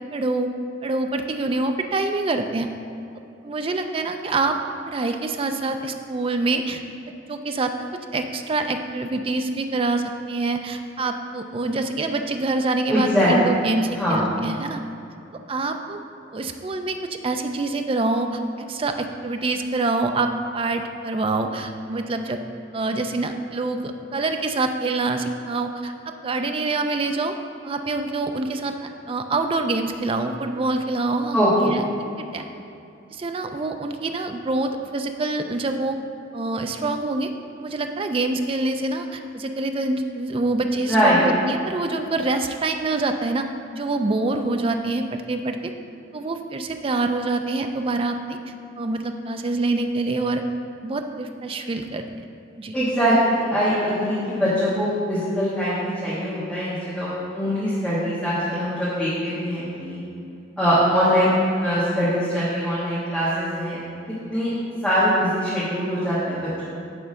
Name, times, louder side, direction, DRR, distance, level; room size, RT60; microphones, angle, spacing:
voice 1, 0.1-0.5 0.8-2.7 3.4-4.6 4.9-6.8 7.3-7.7 8.1-14.8 15.5-16.0 16.3-18.4 18.7-22.4 22.7-27.3 27.6-28.7 29.1-31.8 32.2-32.4 33.1-36.0 36.3-37.3 37.6-43.5 43.8-45.7 46.1-48.4 48.8-50.4 50.8-52.0 52.6-52.7, right 2 dB, 30° right, 6 dB, 0.4 m, -25 dB
voice 2, 12.9-13.3 14.0-14.3 31.3-31.8 40.8-41.3 52.7-57.1 57.3-60.0 60.6-63.8 64.3-64.5 64.8-66.6, equal, 5° left, -12 dB, 1.5 m, -22 dB
9.4 x 3.5 x 6.4 m, 2.7 s
head